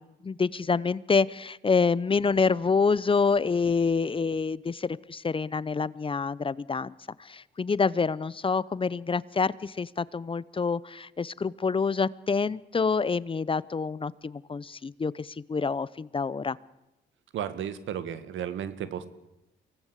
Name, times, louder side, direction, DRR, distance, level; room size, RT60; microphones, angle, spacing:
voice 1, 0.0-6.9 7.2-16.6, left 4 dB, 25° left, 20 dB, 0.7 m, -27 dB
voice 2, 17.3-19.1, right 9 dB, 75° right, 12 dB, 1.9 m, -33 dB
25.0 x 18.0 x 8.3 m, 0.97 s
cardioid pair, 90°, 20 cm